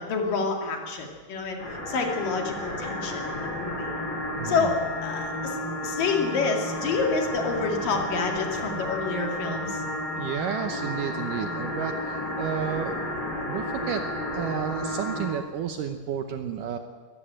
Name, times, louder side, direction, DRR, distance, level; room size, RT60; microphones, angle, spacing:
voice 1, 0.0-3.9 4.4-9.8, left 4 dB, 60° left, 2 dB, 3.7 m, -28 dB
sound 1, 1.6-15.3, left 1 dB, 35° left, 5.7 m, -32 dB
voice 2, 4.4-4.7 10.2-13.0 13.5-14.0 14.3-16.8, right 8 dB, 70° right, 7 dB, 2.2 m, -31 dB
22.0 x 14.0 x 8.9 m, 1.5 s
omnidirectional pair, 4.6 m